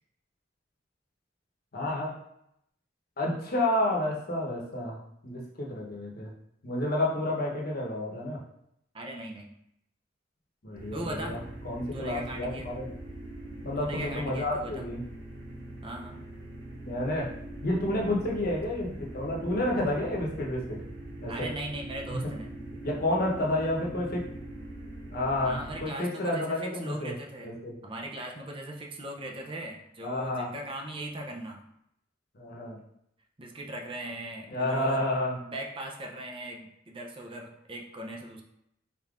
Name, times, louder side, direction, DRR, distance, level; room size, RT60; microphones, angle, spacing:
voice 1, 1.7-2.2 3.2-6.3 6.6-8.4 10.6-11.4 11.6-12.9 13.6-15.0 16.8-17.3 17.6-20.8 21.2-21.5 22.1-22.2 22.8-24.2 25.1-27.1 27.4-27.7 30.0-30.5 32.3-32.8 34.5-35.4, left 1 dB, 50° left, -2 dB, 0.9 m, -30 dB
voice 2, 8.9-9.5 10.9-11.4 11.9-12.7 13.8-14.9 15.8-16.2 21.3-22.5 25.4-27.5 27.8-31.6 33.4-38.4, right 1 dB, 30° right, 1 dB, 0.5 m, -39 dB
sound 1, 10.7-25.8, right 1 dB, 90° right, 1.5 m, -42 dB
4.1 x 3.6 x 2.4 m, 0.76 s
head